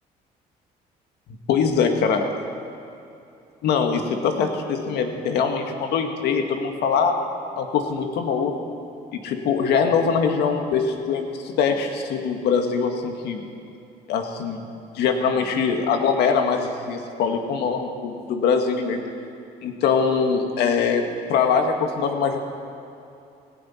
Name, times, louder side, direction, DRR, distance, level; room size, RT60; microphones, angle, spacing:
voice 1, 1.5-2.3 3.6-7.2 7.6-8.7 9.1-13.4 14.1-14.6 15.0-19.0 19.6-22.4, left 6 dB, 75° left, 4 dB, 1.7 m, -23 dB
17.5 x 16.0 x 4.4 m, 2.7 s
cardioid pair, 110°, 17 cm